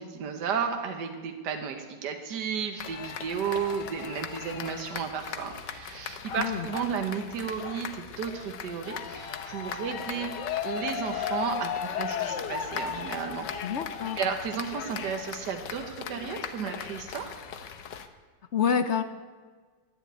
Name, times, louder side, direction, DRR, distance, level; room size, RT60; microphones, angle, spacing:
voice 1, 0.0-10.3 10.6-13.5 14.2-17.3, right 7 dB, 75° right, 5 dB, 1.7 m, -33 dB
sound 1, 2.8-18.1, left 7 dB, 85° left, 1.6 m, -36 dB
voice 2, 13.6-14.2 18.5-19.0, left 7 dB, 55° left, 10 dB, 0.8 m, -27 dB
12.5 x 10.5 x 9.3 m, 1.5 s
omnidirectional pair, 1.8 m